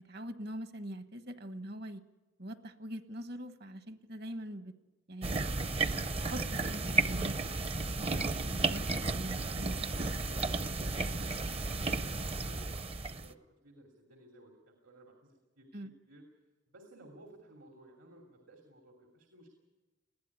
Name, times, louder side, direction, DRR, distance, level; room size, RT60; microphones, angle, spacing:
voice 1, 0.1-2.0 2.4-4.7 5.1-5.7 6.3-8.8 9.1-9.8 15.7-15.9, right 1 dB, 55° right, 10 dB, 1.2 m, -43 dB
sound 1, 5.2-13.3, right 3 dB, 30° right, 0.6 m, -33 dB
voice 2, 8.4-16.3 16.7-19.5, right 1 dB, 80° right, 2 dB, 2.9 m, -57 dB
20.5 x 15.0 x 9.9 m, 1.1 s
head